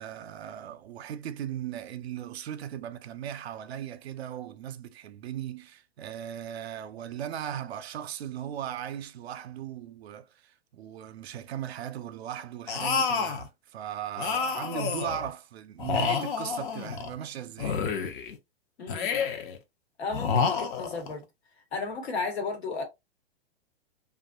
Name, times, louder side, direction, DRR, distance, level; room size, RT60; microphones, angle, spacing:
voice 1, 0.0-17.8, right 10 dB, 75° right, 0.5 m, -37 dB
sound 1, 12.7-13.5 14.2-15.3 15.8-17.1 17.6-18.4 18.9-19.6 20.1-21.1, left 6 dB, 50° left, 0.7 m, -29 dB
voice 2, 18.8-19.1 20.0-21.2 21.7-22.8, left 4 dB, 80° left, 1.3 m, -34 dB
2.6 x 2.4 x 2.2 m
hypercardioid pair, 120°, 32 cm